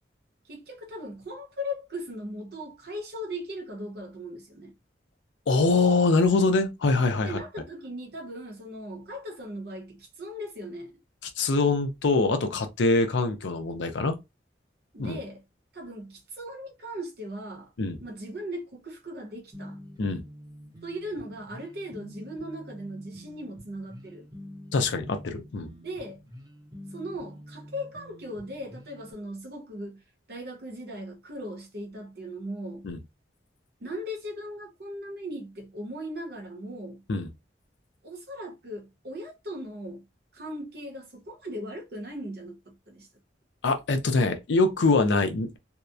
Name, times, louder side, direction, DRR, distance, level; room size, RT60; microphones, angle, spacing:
voice 1, 0.5-4.7 7.2-11.0 14.9-15.4 15.7-17.7 18.0-19.8 20.8-24.3 25.7-26.2 26.9-30.0 30.3-32.9 33.8-37.0 38.0-40.0 40.3-43.1, equal, 55° right, 0.8 m, -38 dB
voice 2, 5.5-7.3 11.4-14.2 15.0-15.2 17.8-18.0 20.0-20.2 24.7-25.7 32.8-33.0 37.1-37.3 43.6-45.6, left 3 dB, 75° left, 0.5 m, -24 dB
sound 1, 19.5-29.1, equal, 20° right, 0.7 m, -47 dB
2.7 x 2.1 x 2.3 m
head